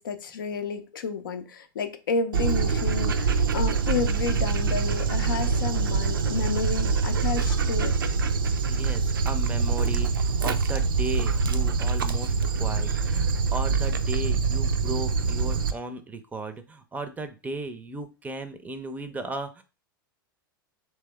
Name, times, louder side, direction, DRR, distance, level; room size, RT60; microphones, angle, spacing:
voice 1, 0.0-8.0, left 5 dB, 65° left, 0.5 m, -31 dB
Dog, 2.3-15.7, right 5 dB, 70° right, 0.4 m, -25 dB
voice 2, 8.7-19.6, right 2 dB, 15° right, 0.5 m, -35 dB
3.4 x 3.1 x 3.3 m
figure-of-eight pair, 90°, 12 cm